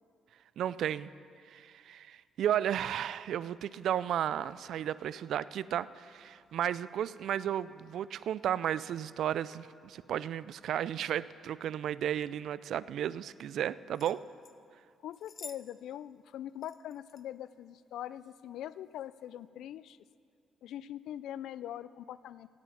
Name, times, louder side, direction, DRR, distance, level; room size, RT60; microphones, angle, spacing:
voice 1, 0.6-1.1 1.5-14.2, right 10 dB, 70° right, 17 dB, 0.3 m, -33 dB
sound 1, 13.9-14.6 15.1-15.6 15.9-16.0 16.6-17.2 18.1-18.3 18.9-19.0, left 5 dB, 40° left, 0.6 m, -50 dB
voice 2, 15.0-20.0 20.6-22.5, left 11 dB, 80° left, 17 dB, 0.3 m, -42 dB
17.0 x 8.9 x 5.6 m, 2.3 s
cardioid pair, 90°, 0 cm